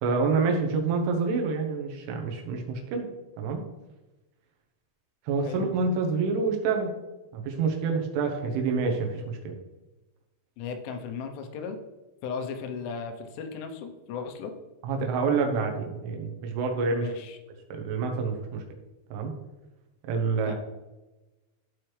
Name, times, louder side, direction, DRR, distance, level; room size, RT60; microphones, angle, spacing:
voice 1, 0.0-3.1 3.4-3.6 5.3-6.9 7.3-9.6 14.8-17.1 17.7-18.6 19.1-19.3 20.1-20.5, right 4 dB, 85° right, 3 dB, 3.6 m, -27 dB
voice 2, 10.6-11.8 12.2-14.5 17.0-17.4 20.4-20.5, left 5 dB, 90° left, 6 dB, 3.4 m, -36 dB
13.5 x 4.6 x 3.2 m, 1.1 s
omnidirectional pair, 5.4 m